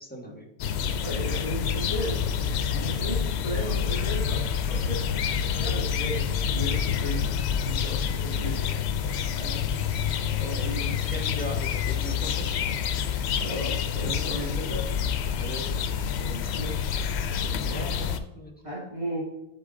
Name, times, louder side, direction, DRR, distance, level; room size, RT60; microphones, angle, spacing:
voice 1, 0.1-0.5 10.4-10.8 11.1-12.5 14.0-14.4 15.3-15.8 16.2-16.5 17.4-18.5, equal, 10° left, -1 dB, 1.3 m, -39 dB
sound 1, 0.6-18.2, left 7 dB, 75° left, 0.8 m, -28 dB
voice 2, 1.0-7.3 7.6-8.7 9.3-9.7 10.2-10.9 12.8-13.1 13.4-14.9 16.2-16.8 17.4-17.8 18.6-19.2, right 1 dB, 30° right, -8 dB, 2.0 m, -36 dB
10.5 x 4.1 x 3.7 m, 0.88 s
omnidirectional pair, 1.1 m